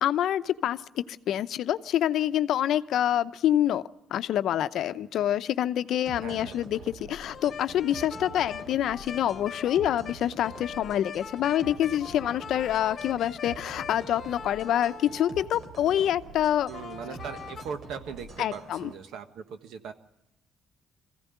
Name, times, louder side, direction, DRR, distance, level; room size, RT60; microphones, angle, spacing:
voice 1, 0.0-3.8 4.1-16.7 18.4-18.9, left 11 dB, 75° left, 12 dB, 0.7 m, -26 dB
sound 1, 6.1-18.9, right 4 dB, 65° right, 2.9 m, -46 dB
voice 2, 6.2-6.6 16.7-19.9, right 6 dB, 85° right, 9 dB, 1.4 m, -39 dB
sound 2, 7.3-15.9 16.7-17.6, left 6 dB, 50° left, 1.2 m, -42 dB
22.0 x 15.5 x 9.3 m, 0.90 s
cardioid pair, 90°, 0 cm